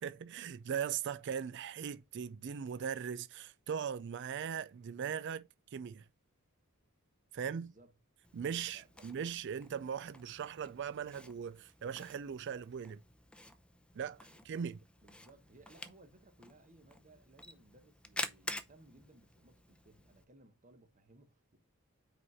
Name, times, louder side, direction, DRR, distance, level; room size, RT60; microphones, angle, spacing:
voice 1, 0.0-6.1 7.3-7.7 8.3-13.0 13.9-14.8, right 7 dB, 55° right, 0.4 m, -39 dB
voice 2, 7.5-7.9 8.4-9.1 14.3-21.6, right 2 dB, 35° right, 1.0 m, -62 dB
Camera, 8.2-20.2, left 1 dB, 5° left, 0.6 m, -49 dB
5.1 x 4.8 x 5.6 m
head